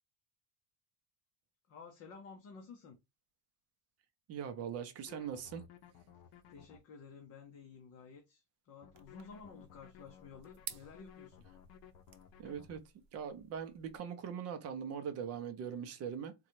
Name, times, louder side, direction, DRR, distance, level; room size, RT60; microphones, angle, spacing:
voice 1, 1.7-3.0 6.5-11.4, left 5 dB, 40° left, 0.7 m, -53 dB
voice 2, 4.3-5.6 12.4-12.8 13.1-16.3, right 7 dB, 40° right, 0.5 m, -41 dB
sound 1, 5.1-6.8 8.8-12.8, left 9 dB, 75° left, 0.7 m, -57 dB
sound 2, 8.9-14.0, right 10 dB, 75° right, 0.9 m, -54 dB
3.8 x 2.3 x 3.0 m
cardioid pair, 170°, 40 cm